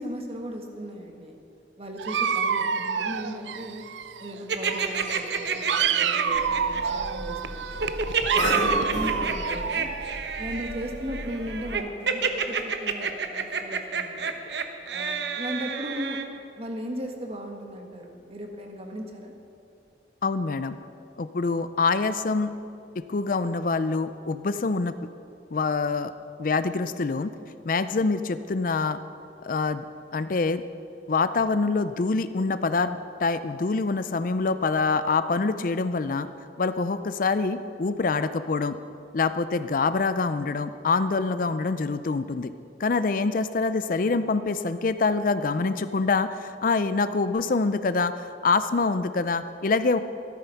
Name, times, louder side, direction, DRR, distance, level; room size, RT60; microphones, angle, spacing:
voice 1, 0.0-1.3 1.8-3.8 4.2-7.9 8.3-9.9 10.4-14.3 14.9-16.2 16.6-19.3, equal, 35° right, 2 dB, 1.7 m, -37 dB
Dog, 2.0-4.4 4.7-10.6, right 6 dB, 90° right, 0.6 m, -28 dB
sound 1, 4.5-6.8 7.8-16.2, right 5 dB, 70° right, 1.0 m, -29 dB
Cough, 6.3-11.7, equal, 75° left, 3.7 m, -35 dB
voice 2, 20.2-20.8 21.2-22.5 23.0-24.9 25.5-26.1 26.4-27.3 27.7-29.0 29.4-29.8 30.1-30.6 31.1-36.3 36.6-38.8 39.1-42.5 42.8-50.0, left 4 dB, 50° left, 12 dB, 0.5 m, -25 dB
14.0 x 13.0 x 5.8 m, 2.6 s
head